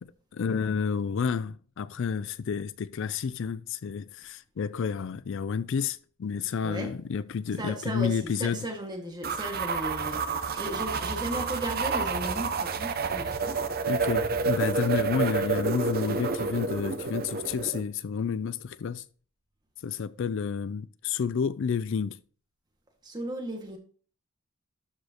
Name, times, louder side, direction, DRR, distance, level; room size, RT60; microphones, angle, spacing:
voice 1, 0.0-8.7 13.9-19.0 19.8-22.2, left 6 dB, 60° left, 0.4 m, -30 dB
voice 2, 7.6-13.6 23.0-23.8, right 1 dB, 20° right, 1.7 m, -36 dB
sound 1, 9.2-17.8, right 4 dB, 45° right, 0.7 m, -29 dB
12.5 x 5.1 x 2.9 m
head